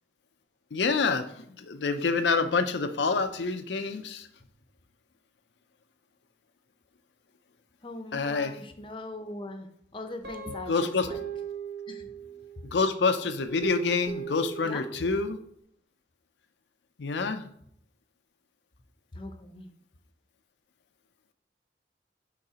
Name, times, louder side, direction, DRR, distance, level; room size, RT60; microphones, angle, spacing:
voice 1, 0.7-4.3 8.1-8.6 10.7-11.1 12.6-15.4 17.0-17.5, left 4 dB, 80° left, 9 dB, 0.5 m, -27 dB
voice 2, 7.8-11.2 11.9-12.1 14.6-14.8 19.1-19.7, left 2 dB, 30° left, 6 dB, 0.6 m, -40 dB
Guitar, 10.2-12.7 13.4-15.3, right 6 dB, 65° right, 1.0 m, -39 dB
10.0 x 3.9 x 2.8 m, 0.68 s
head